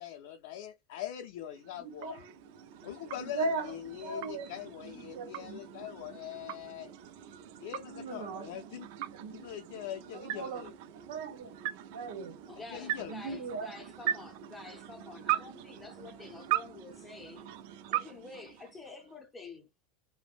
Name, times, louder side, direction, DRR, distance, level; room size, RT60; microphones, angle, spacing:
voice 1, 0.0-2.3 2.8-6.9 7.6-8.9 9.3-10.7 12.7-13.4, left 11 dB, 70° left, 0.5 m, -43 dB
sound 1, 1.4-19.2, right 13 dB, 65° right, 0.4 m, -40 dB
voice 2, 1.8-2.2 3.2-3.7 4.0-5.9 7.8-9.4 10.1-10.7 11.1-11.6 11.8-12.3 13.0-13.7, right 3 dB, 85° right, 1.1 m, -39 dB
voice 3, 12.5-17.5 17.9-19.7, left 3 dB, 10° left, 0.6 m, -48 dB
3.3 x 2.1 x 2.4 m
supercardioid pair, 135°, 0 cm